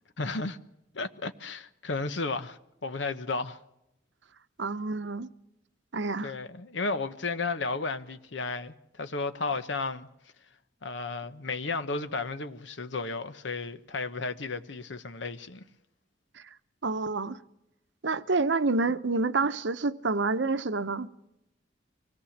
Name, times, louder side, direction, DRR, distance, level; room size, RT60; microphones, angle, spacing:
voice 1, 0.2-0.6 0.9-3.6 6.2-10.1 10.8-15.6, left 3 dB, 75° left, 1.0 m, -33 dB
voice 2, 4.6-5.3 5.9-6.3 16.8-17.4 18.0-21.1, right 3 dB, 70° right, 0.9 m, -28 dB
24.5 x 17.5 x 7.3 m
head